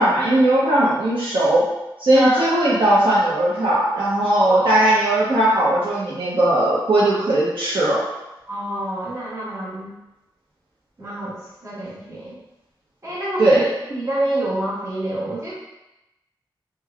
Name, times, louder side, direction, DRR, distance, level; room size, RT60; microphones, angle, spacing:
voice 1, 0.0-1.7 2.0-8.0 13.4-13.7, right 1 dB, 75° right, -8 dB, 0.6 m, -18 dB
voice 2, 2.1-2.5 4.4-4.8 8.5-9.9 11.0-11.4 11.6-12.4 13.0-15.5, right 1 dB, 35° right, -8 dB, 1.3 m, -26 dB
3.3 x 2.2 x 2.3 m, 0.96 s
cardioid pair, 45°, 9 cm